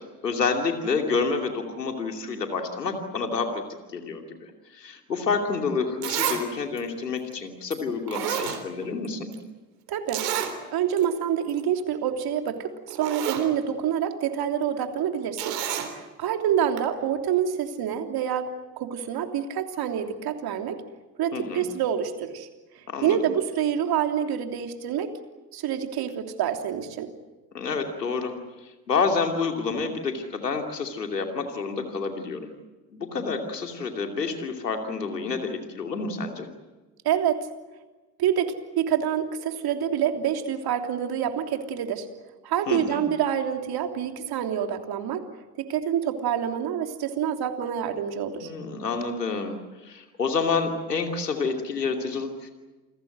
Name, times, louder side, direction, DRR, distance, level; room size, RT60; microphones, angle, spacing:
voice 1, 0.0-3.6 3.9-9.4 21.3-21.7 22.9-23.2 27.5-28.3 28.6-32.5 32.9-36.5 42.7-43.0 48.4-49.6 49.8-52.5, left 4 dB, 90° left, 4 dB, 2.8 m, -29 dB
Zipper (clothing), 5.5-5.6 6.0-6.4 6.8-6.9 7.7-7.8 8.1-9.1 9.3-9.4 10.1-10.5 11.0-11.1 11.4-11.6 12.5-12.6 12.9-13.5 15.4-15.9 16.8-16.9, right 10 dB, 75° right, 3.9 m, -29 dB
voice 2, 9.9-10.3 10.7-15.6 15.9-20.8 21.2-22.5 23.0-25.2 25.5-27.1 37.0-37.5 38.2-42.1 42.4-45.3 45.6-48.5, right 9 dB, 50° right, 5 dB, 3.2 m, -27 dB
29.0 x 21.0 x 7.9 m, 1.2 s
figure-of-eight pair, 65°, 47 cm